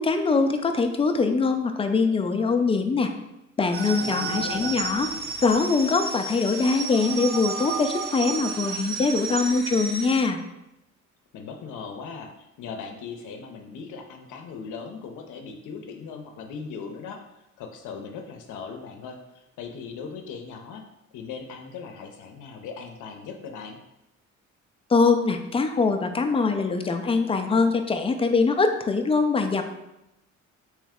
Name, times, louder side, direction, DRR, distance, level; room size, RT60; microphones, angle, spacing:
voice 1, 0.0-3.1 3.6-5.1 5.4-10.4 24.9-29.6, left 4 dB, 20° left, 6 dB, 0.4 m, -23 dB
sound 1, 3.7-10.2, right 4 dB, 35° right, 0.6 m, -32 dB
voice 2, 4.0-4.8 11.3-17.2 17.6-20.8 21.1-23.8, left 5 dB, 80° left, 3 dB, 0.6 m, -39 dB
3.2 x 3.1 x 3.6 m, 0.89 s
cardioid pair, 90°, 30 cm